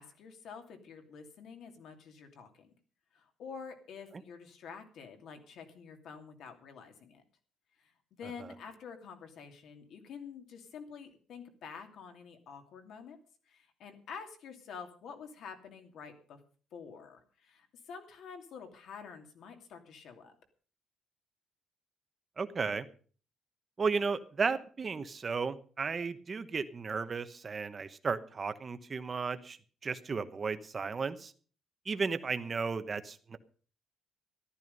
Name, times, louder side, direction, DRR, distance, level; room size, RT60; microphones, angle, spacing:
voice 1, 0.0-2.7 3.1-7.2 7.8-7.9 8.2-13.2 13.5-16.4 16.7-20.3, left 6 dB, 60° left, 5 dB, 2.8 m, -48 dB
voice 2, 22.4-22.9 23.8-29.6 29.8-31.3 31.8-33.4, right 5 dB, 25° right, 11 dB, 1.0 m, -34 dB
14.0 x 13.0 x 5.3 m, 0.42 s
cardioid pair, 175°, 0 cm